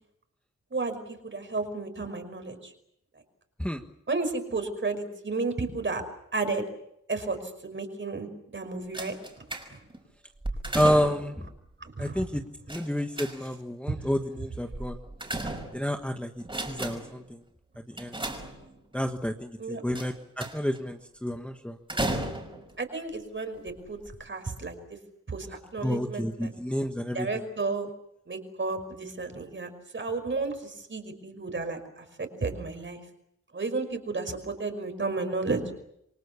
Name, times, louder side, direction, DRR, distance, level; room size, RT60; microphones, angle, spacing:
voice 1, 0.7-2.7 4.1-6.0 6.3-6.7 7.1-9.1 9.7-9.8 11.8-12.2 13.9-14.0 19.6-19.8 22.8-24.8 25.3-26.5 27.1-27.9 28.3-33.0 33.5-35.6, right 3 dB, 35° right, 7 dB, 5.4 m, -32 dB
sound 1, 8.9-10.0 10.4-11.4 12.7-13.7 14.7-16.0 16.4-17.2 18.0-19.0 20.0-20.8 21.9-22.7 23.5-23.7 24.0-24.1, right 1 dB, 15° right, 5.3 m, -34 dB
voice 2, 10.7-11.5 12.0-15.0 15.7-16.3 16.6-17.4 17.9-18.2 18.9-21.8 25.8-27.3, equal, 5° left, 4 dB, 1.4 m, -29 dB
28.0 x 24.5 x 7.1 m, 0.76 s
wide cardioid pair, 150°, 32 cm